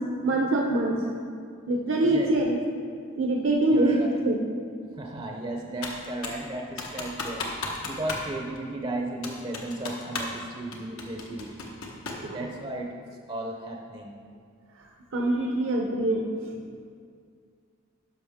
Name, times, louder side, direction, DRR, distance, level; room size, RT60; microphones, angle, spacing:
voice 1, 0.2-0.9 1.7-2.4 3.2-4.0 4.2-4.3 12.2-12.4 15.1-16.3, right 2 dB, 65° right, 0 dB, 0.7 m, -24 dB
voice 2, 2.0-2.6 3.7-4.2 4.9-11.5 12.3-14.2, right 1 dB, 25° right, 1 dB, 0.6 m, -35 dB
Computer keyboard, 5.8-6.4 6.8-8.3 8.5-8.6 9.2-10.4 10.7-12.3, left 3 dB, 85° left, 1.1 m, -34 dB
11.0 x 5.9 x 3.6 m, 2.2 s
head